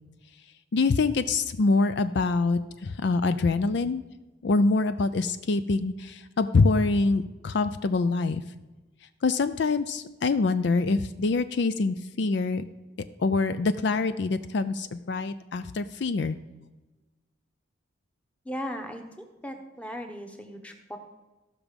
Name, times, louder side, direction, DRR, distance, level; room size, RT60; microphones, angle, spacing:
voice 1, 0.7-4.0 4.4-8.4 9.2-12.6 13.2-16.4, left 3 dB, 60° left, 12 dB, 0.4 m, -25 dB
voice 2, 18.4-21.0, equal, 5° left, 5 dB, 1.0 m, -37 dB
15.0 x 6.1 x 5.2 m, 1.2 s
head